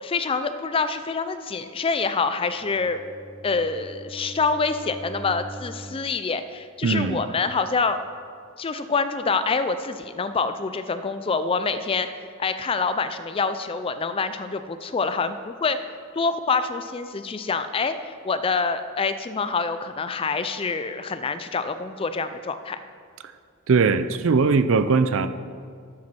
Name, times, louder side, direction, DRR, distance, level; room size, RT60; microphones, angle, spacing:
voice 1, 0.0-3.0 3.4-8.0 8.6-12.1 12.4-15.8 16.1-22.8, left 4 dB, 25° left, 10 dB, 0.3 m, -26 dB
Bowed string instrument, 2.5-6.1, equal, 20° right, 2.4 m, -41 dB
voice 2, 6.8-7.2 23.7-25.3, right 4 dB, 60° right, 11 dB, 0.4 m, -20 dB
12.0 x 7.5 x 4.3 m, 2.2 s
head